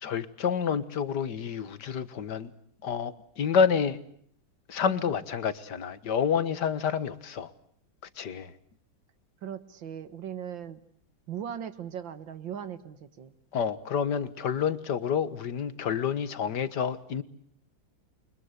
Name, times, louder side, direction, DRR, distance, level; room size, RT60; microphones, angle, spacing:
voice 1, 0.0-2.5 2.8-4.0 4.7-7.5 8.2-8.5 13.5-17.2, left 7 dB, 60° left, 14 dB, 2.0 m, -28 dB
voice 2, 9.4-10.8 11.3-13.3, right 9 dB, 70° right, 13 dB, 2.3 m, -38 dB
29.5 x 24.5 x 8.2 m, 0.64 s
omnidirectional pair, 2.1 m